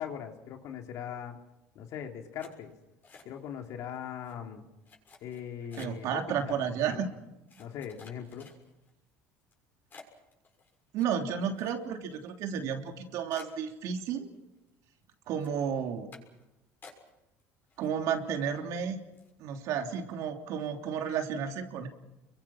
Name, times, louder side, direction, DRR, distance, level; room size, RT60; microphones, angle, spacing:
voice 1, 0.0-1.4 1.7-2.7 3.2-4.6 5.2-6.6 6.9-7.0 7.6-8.5, left 8 dB, 65° left, 3 dB, 3.3 m, -40 dB
sound 1, 2.4-3.6 3.9-4.3 4.8-6.1 6.8-6.9 7.5-8.9 9.4-9.5 9.9-12.1 12.4-12.5 12.9-13.0 13.3-14.4 14.7-15.1 15.4-15.6 16.1-16.4 16.8-17.4 17.7-18.3 18.7-18.8 19.1-19.4, left 4 dB, 30° left, 6.7 m, -54 dB
voice 2, 5.8-7.1 10.9-14.3 15.3-16.1 17.8-19.0 19.4-21.9, right 7 dB, 65° right, 4 dB, 3.2 m, -32 dB
30.0 x 23.5 x 6.0 m, 0.96 s
cardioid pair, 115°, 6 cm